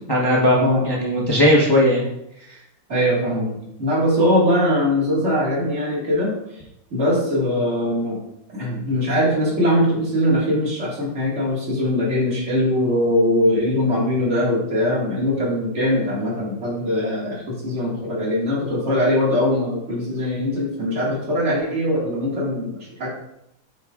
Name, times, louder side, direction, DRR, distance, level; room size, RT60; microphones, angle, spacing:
voice 1, 0.0-2.1, equal, 25° left, -3 dB, 0.5 m, -18 dB
voice 2, 2.9-6.4 6.9-8.2 8.5-23.1, left 1 dB, 35° right, -4 dB, 2.0 m, -21 dB
7.5 x 5.2 x 2.4 m, 0.80 s
omnidirectional pair, 2.1 m